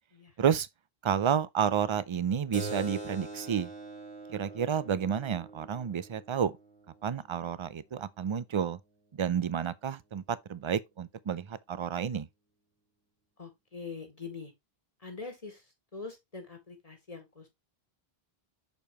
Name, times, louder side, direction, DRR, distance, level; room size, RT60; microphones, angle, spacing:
voice 1, 1.0-3.7 4.3-6.6 7.0-8.8 9.1-12.3, right 8 dB, 50° right, 0.3 m, -30 dB
Keyboard (musical), 2.5-7.6, right 2 dB, 5° left, 1.5 m, -43 dB
voice 2, 13.4-14.5 15.0-15.6 15.9-17.5, left 4 dB, 35° left, 1.6 m, -43 dB
6.6 x 5.2 x 2.9 m
omnidirectional pair, 1.0 m